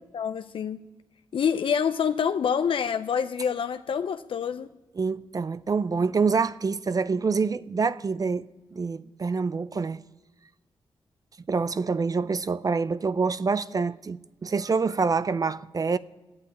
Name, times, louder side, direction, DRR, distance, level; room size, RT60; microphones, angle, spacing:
voice 1, 0.1-0.8 1.3-4.7, left 7 dB, 70° left, 0.5 m, -26 dB
voice 2, 5.0-8.4 8.7-10.0 11.5-16.0, right 4 dB, 40° right, 0.5 m, -26 dB
12.0 x 8.6 x 9.4 m
cardioid pair, 60°, 9 cm